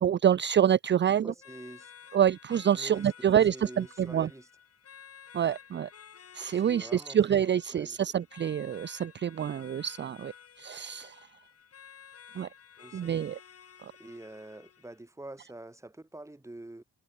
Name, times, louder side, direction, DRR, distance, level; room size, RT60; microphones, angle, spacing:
voice 1, 0.0-1.3 2.1-4.3 5.3-5.9 6.3-11.3 12.3-12.5 12.9-13.4 13.8-13.9, right 9 dB, 35° right, 0.6 m, -27 dB
voice 2, 1.1-1.9 2.7-4.5 6.5-7.2 7.7-8.0 12.8-13.1 14.0-16.8, right 2 dB, 10° right, 2.3 m, -46 dB
sound 1, 1.4-15.0, left 8 dB, 50° left, 3.8 m, -53 dB
cardioid pair, 90°, 30 cm